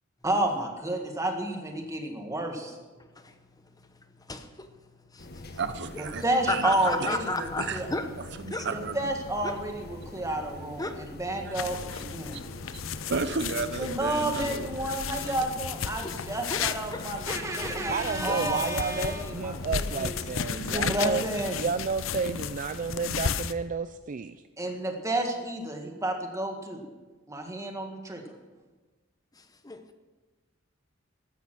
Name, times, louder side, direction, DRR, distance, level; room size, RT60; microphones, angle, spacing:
voice 1, 0.2-2.8 6.2-7.9 8.7-12.4 13.8-20.1 20.5-21.7 24.6-26.8 27.3-28.2, right 1 dB, 15° right, 1.9 m, -31 dB
voice 2, 3.0-5.6 6.2-8.1 8.5-8.7 9.4-9.6 10.8-11.0 12.7-12.8 16.0-16.2 16.5-16.6 16.9-17.7 18.2-18.4 29.3-29.9, left 2 dB, 20° left, 0.9 m, -35 dB
sound 1, 5.2-21.0, left 2 dB, 50° left, 1.4 m, -44 dB
voice 3, 5.6-7.1 7.6-7.8 8.4-9.1 11.4-11.5 11.9-12.0 12.3-12.4 12.7-12.8 13.1-14.7 15.1-15.4, right 4 dB, 60° right, 0.8 m, -33 dB
sound 2, 11.5-23.5, left 7 dB, 75° left, 0.6 m, -34 dB
voice 4, 17.9-21.3 21.6-24.4, right 5 dB, 40° right, 0.4 m, -31 dB
14.5 x 12.5 x 6.2 m
head